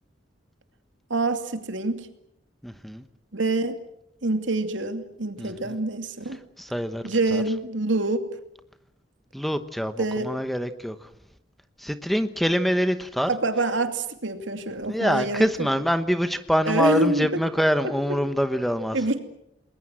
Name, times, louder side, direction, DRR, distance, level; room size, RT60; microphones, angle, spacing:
voice 1, 1.1-2.1 3.3-3.8 4.2-6.4 7.0-8.3 10.0-10.3 13.3-15.7 16.7-17.3 18.1-18.2 18.9-19.2, right 2 dB, 85° right, 7 dB, 2.6 m, -26 dB
voice 2, 2.6-3.0 5.4-5.8 6.6-7.0 7.3-7.4 9.3-11.0 11.8-13.3 14.9-19.0, equal, ahead, 10 dB, 1.0 m, -25 dB
29.5 x 20.5 x 7.6 m, 0.78 s
head